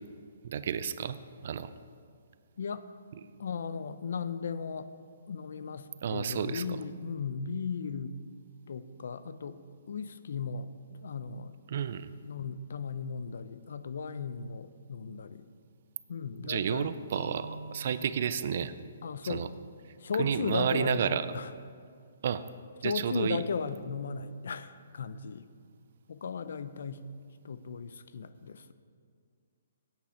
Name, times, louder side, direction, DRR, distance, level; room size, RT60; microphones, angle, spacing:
voice 1, 0.4-1.7 6.0-6.6 11.7-12.1 16.4-18.7 19.2-19.5 20.2-21.3 22.2-22.4 22.8-23.4, right 8 dB, 50° right, 14 dB, 0.4 m, -31 dB
voice 2, 2.6-2.9 3.4-4.9 5.3-8.2 8.7-9.6 9.9-11.6 12.2-15.5 16.1-16.9 19.0-19.5 20.0-21.5 22.8-25.5 26.1-27.1 27.4-28.7, left 5 dB, 65° left, 13 dB, 0.5 m, -36 dB
sound 1, 17.1-20.0, right 3 dB, 20° left, 3.0 m, -47 dB
12.0 x 8.8 x 4.3 m, 2.2 s
hypercardioid pair, 165°, 0 cm